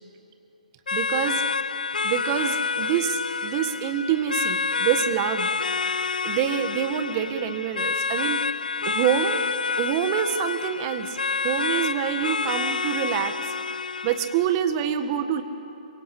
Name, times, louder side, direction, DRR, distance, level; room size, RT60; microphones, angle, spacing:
sound 1, 0.9-14.5, left 5 dB, 75° left, 0.6 m, -28 dB
voice 1, 0.9-1.4 2.0-5.5 6.2-8.4 8.8-9.5 9.8-11.2 11.4-13.3 14.0-15.4, right 9 dB, 30° right, 8 dB, 1.6 m, -26 dB
27.5 x 24.0 x 8.5 m, 2.9 s
figure-of-eight pair, 140°, 5 cm